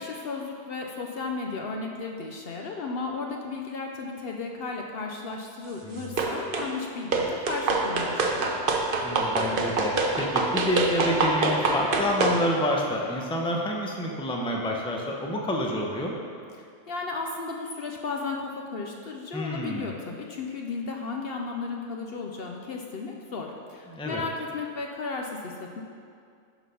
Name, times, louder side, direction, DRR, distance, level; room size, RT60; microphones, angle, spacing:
voice 1, 0.0-8.6 16.9-25.8, left 4 dB, 60° left, 1 dB, 0.8 m, -34 dB
sound 1, 6.2-6.7 7.1-12.4, right 3 dB, 50° right, 0.9 m, -25 dB
voice 2, 9.0-16.1 19.3-19.9 23.9-24.2, left 1 dB, 5° left, 0 dB, 0.6 m, -28 dB
10.5 x 4.0 x 5.7 m, 2.3 s
omnidirectional pair, 1.3 m